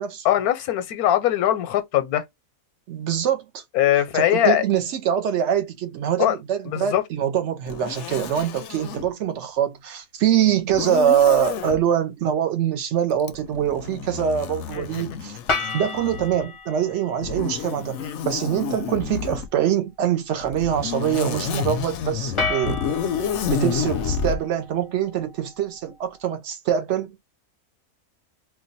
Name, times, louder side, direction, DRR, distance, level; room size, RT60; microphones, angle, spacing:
voice 1, 0.2-2.2 3.7-4.6 6.2-6.4 6.7-7.0 14.7-15.0 18.0-18.2, left 12 dB, 90° left, 1.1 m, -21 dB
voice 2, 2.9-3.6 4.1-15.4 15.7-22.8 23.5-27.2, right 9 dB, 60° right, 0.8 m, -24 dB
Zipper (clothing), 7.7-9.1 10.7-11.8 13.2-16.4 17.2-19.5 20.4-24.4, left 7 dB, 65° left, 0.7 m, -29 dB
sound 1, 15.5-17.5 22.4-25.5, left 3 dB, 35° left, 0.5 m, -32 dB
2.5 x 2.2 x 3.9 m
omnidirectional pair, 1.5 m